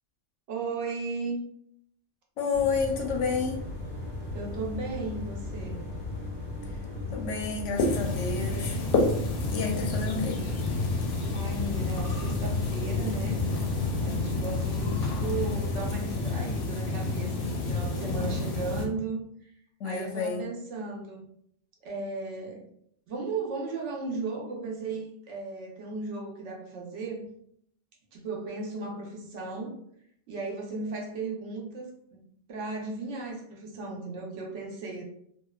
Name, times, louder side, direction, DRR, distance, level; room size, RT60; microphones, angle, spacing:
voice 1, 0.5-1.4 4.3-5.8 11.3-13.4 14.0-19.5 19.8-21.3 21.8-22.6 23.1-27.2 28.1-29.7 30.3-31.9 32.5-35.0, right 3 dB, 75° right, -1 dB, 0.9 m, -35 dB
voice 2, 2.4-3.6 7.1-8.8 9.5-10.4 19.8-20.5, left 5 dB, 85° left, 2 dB, 0.9 m, -30 dB
sound 1, 2.5-16.0, left 2 dB, 20° right, 1.1 m, -37 dB
sound 2, 7.8-18.9, left 3 dB, 60° left, 0.6 m, -29 dB
2.7 x 2.1 x 2.2 m, 0.69 s
omnidirectional pair, 1.2 m